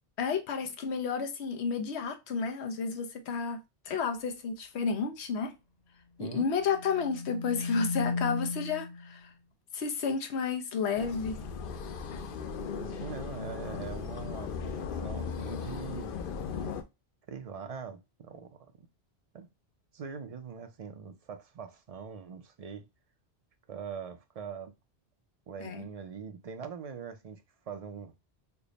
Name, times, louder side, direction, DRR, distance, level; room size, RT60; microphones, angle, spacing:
voice 1, 0.2-3.6 3.8-5.5 6.2-9.3 9.7-11.4 25.6-25.9, left 5 dB, 90° left, 1.0 m, -31 dB
sound 1, 6.6-9.1, left 3 dB, 40° left, 0.9 m, -35 dB
sound 2, 11.0-16.8, left 5 dB, 60° left, 0.6 m, -37 dB
voice 2, 12.8-16.1 17.3-18.6 19.3-19.5 19.9-22.9 23.7-24.7 25.5-28.1, right 6 dB, 50° right, 0.5 m, -42 dB
3.3 x 2.1 x 3.9 m
omnidirectional pair, 1.1 m